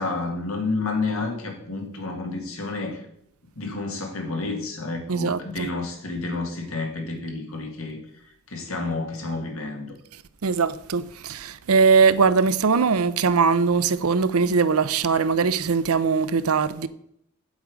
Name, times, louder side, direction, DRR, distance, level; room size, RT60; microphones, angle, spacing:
voice 1, 0.0-3.0 3.6-8.0 8.5-10.0, left 3 dB, 70° left, 2.2 m, -30 dB
voice 2, 5.1-5.7 10.4-16.9, right 5 dB, 85° right, 0.6 m, -21 dB
8.1 x 8.1 x 5.1 m
head